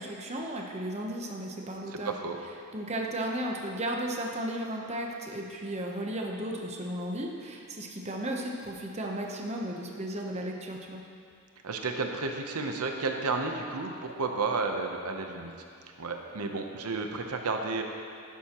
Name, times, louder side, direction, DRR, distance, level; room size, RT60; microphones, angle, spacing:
voice 1, 0.0-2.2 2.7-11.0, right 1 dB, 30° right, 0 dB, 0.8 m, -34 dB
voice 2, 1.9-2.4 11.6-15.5 16.0-17.8, right 3 dB, 90° right, 4 dB, 0.8 m, -32 dB
11.5 x 10.0 x 3.0 m, 2.3 s
head